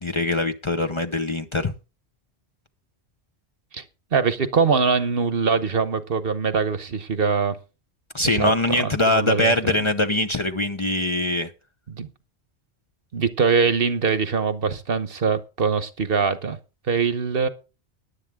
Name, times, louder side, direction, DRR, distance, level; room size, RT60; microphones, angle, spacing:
voice 1, 0.0-1.7 8.1-11.5, left 1 dB, 30° left, 0.8 m, -22 dB
voice 2, 4.1-7.6 8.2-9.8 11.9-12.1 13.1-16.6 16.9-17.5, right 5 dB, 60° right, 1.2 m, -23 dB
15.0 x 10.5 x 3.6 m
omnidirectional pair, 1.1 m